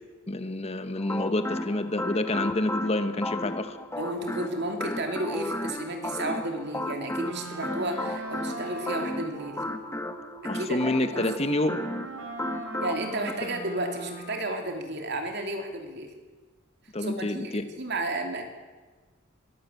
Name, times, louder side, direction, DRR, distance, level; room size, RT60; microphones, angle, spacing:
voice 1, 0.3-3.8 10.5-11.8 16.9-17.6, left 1 dB, 30° left, 10 dB, 1.1 m, -28 dB
sound 1, 1.0-13.3, left 1 dB, 15° left, 1.1 m, -34 dB
voice 2, 4.0-9.6 10.4-11.3 12.8-16.1 17.0-18.4, right 1 dB, 55° right, 4 dB, 2.9 m, -32 dB
Wind instrument woodwind instrument, 7.1-14.6, right 2 dB, 90° right, 3.9 m, -40 dB
23.0 x 13.5 x 8.3 m, 1.4 s
head